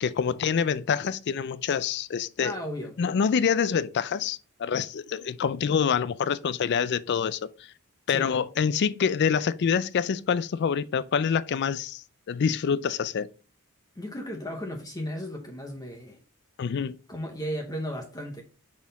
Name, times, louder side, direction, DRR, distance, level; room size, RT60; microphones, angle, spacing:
voice 1, 0.0-2.5 3.0-7.7 8.1-13.3 16.6-17.0, left 7 dB, 50° left, 0.3 m, -26 dB
voice 2, 2.4-2.9 8.1-8.3 14.0-16.2 17.1-18.4, equal, 15° left, 0.9 m, -35 dB
5.9 x 4.3 x 4.0 m
head